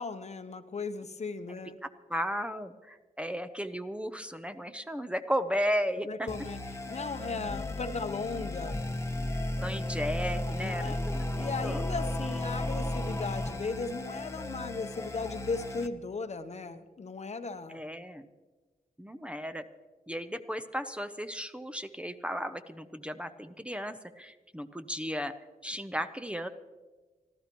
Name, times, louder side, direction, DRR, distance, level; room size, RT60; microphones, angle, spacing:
voice 1, 0.0-1.8 6.1-6.6 6.9-8.8 10.6-11.0 11.4-17.9, left 4 dB, 50° left, 9 dB, 0.9 m, -37 dB
voice 2, 1.8-6.3 9.6-11.8 17.7-18.3 19.0-19.6 20.1-25.3 25.6-26.5, equal, 10° right, 9 dB, 0.6 m, -35 dB
sound 1, 6.3-15.9, left 1 dB, 20° left, 1.0 m, -34 dB
25.5 x 14.0 x 3.0 m, 1.3 s
wide cardioid pair, 120°, 15 cm